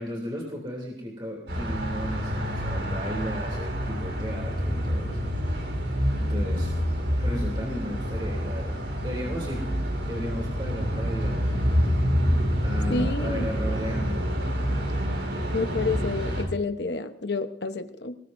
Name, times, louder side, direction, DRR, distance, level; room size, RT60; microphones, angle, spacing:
voice 1, 0.0-5.3 6.2-6.7 7.2-9.7 10.0-11.5 12.6-14.3, equal, 25° right, -2 dB, 3.2 m, -35 dB
sound 1, 1.5-16.4, equal, 75° right, 7.3 m, -27 dB
voice 2, 12.9-13.5 15.5-18.2, left 3 dB, 70° left, 9 dB, 1.1 m, -29 dB
24.0 x 20.5 x 2.7 m, 0.68 s
head